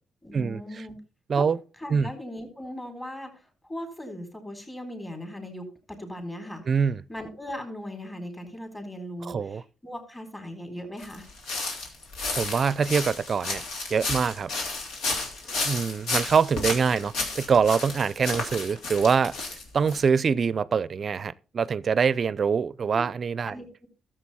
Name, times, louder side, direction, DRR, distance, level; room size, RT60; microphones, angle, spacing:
voice 1, 0.2-1.0 1.4-1.5 1.8-6.6 7.1-11.3 22.9-23.0 23.4-23.9, equal, 15° left, 3.9 m, -38 dB
voice 2, 6.7-7.0 9.3-9.6 12.4-13.6 13.9-14.5 15.6-19.3 19.7-23.6, right 6 dB, 45° right, 0.5 m, -24 dB
sound 1, 11.0-20.0, left 3 dB, 80° left, 3.0 m, -32 dB
13.0 x 7.6 x 4.2 m
cardioid pair, 90°, 0 cm